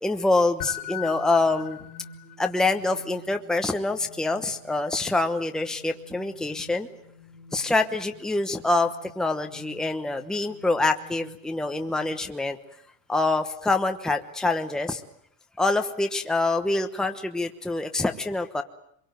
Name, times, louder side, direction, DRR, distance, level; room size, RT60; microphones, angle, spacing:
voice 1, 0.0-1.8 2.4-6.9 7.5-8.9 9.2-12.6 13.1-15.0 15.6-18.6, left 2 dB, ahead, 5 dB, 1.1 m, -25 dB
sound 1, 0.6-12.3, left 8 dB, 90° left, 4.8 m, -44 dB
24.0 x 23.0 x 9.3 m, 0.73 s
supercardioid pair, 135°, 44 cm